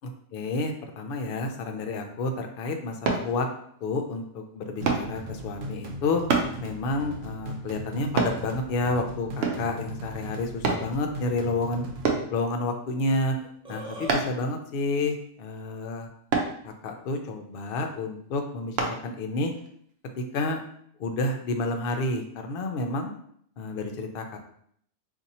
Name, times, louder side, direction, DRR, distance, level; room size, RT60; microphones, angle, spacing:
voice 1, 0.3-3.5 3.8-6.2 6.6-11.8 12.3-13.4 13.7-16.1 16.6-19.5 20.2-20.6 21.0-23.1 23.6-24.4, left 2 dB, 65° left, 4 dB, 0.6 m, -30 dB
sound 1, 3.1-3.3 4.9-5.1 6.3-6.5 8.2-8.4 9.4-9.7 10.6-10.9 12.0-12.3 14.1-14.4 16.3-16.5 18.8-19.0 19.5-19.7, right 4 dB, 60° right, 0.7 m, -25 dB
sound 2, 4.8-12.2, equal, 80° right, 1.0 m, -38 dB
Burping eructation, 13.4-14.2, equal, 5° right, 0.6 m, -38 dB
2.7 x 2.5 x 4.1 m, 0.65 s
omnidirectional pair, 1.3 m